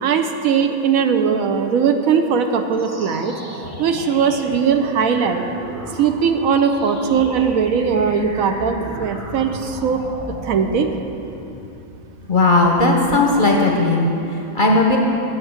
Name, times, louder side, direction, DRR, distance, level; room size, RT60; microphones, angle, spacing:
voice 1, 0.0-3.3 3.8-5.4 6.0-10.0 10.4-10.9, right 6 dB, 70° right, 6 dB, 1.0 m, -19 dB
sound 1, 2.7-12.2, equal, 15° right, 0.7 m, -35 dB
voice 2, 12.3-15.0, left 2 dB, 45° left, 0 dB, 0.8 m, -16 dB
9.0 x 5.9 x 7.9 m, 2.9 s
omnidirectional pair, 1.5 m